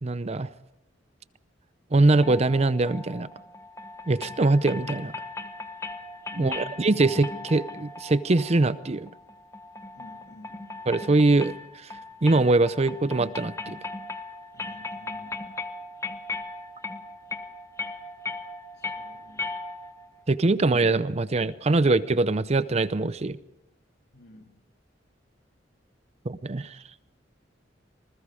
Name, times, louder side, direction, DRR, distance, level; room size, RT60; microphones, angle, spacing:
voice 1, 0.0-0.5 1.9-3.3 4.1-5.1 6.4-9.1 10.9-11.5 11.8-11.9 12.2-13.8 20.3-23.4 26.3-26.8, right 2 dB, 35° right, 15 dB, 0.6 m, -22 dB
sound 1, 2.2-20.1, left 3 dB, 15° left, 1.2 m, -38 dB
voice 2, 6.3-6.8 9.9-10.7 14.5-15.4 18.8-19.5 24.1-24.6, left 1 dB, 60° left, 4 dB, 2.6 m, -47 dB
27.0 x 20.5 x 5.0 m, 0.90 s
head